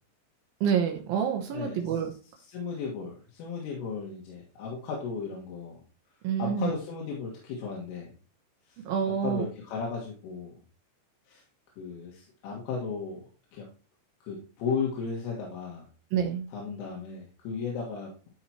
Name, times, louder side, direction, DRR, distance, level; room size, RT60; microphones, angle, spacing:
voice 1, 0.6-2.1 6.2-6.7 8.9-9.5 16.1-16.4, right 8 dB, 90° right, 3 dB, 2.1 m, -27 dB
voice 2, 1.5-5.8 6.4-8.1 8.7-10.5 11.3-11.4 11.8-13.2 13.5-13.7 14.2-15.9 16.5-18.3, left 5 dB, 80° left, -2 dB, 4.2 m, -35 dB
13.5 x 5.9 x 2.9 m, 0.37 s
omnidirectional pair, 5.8 m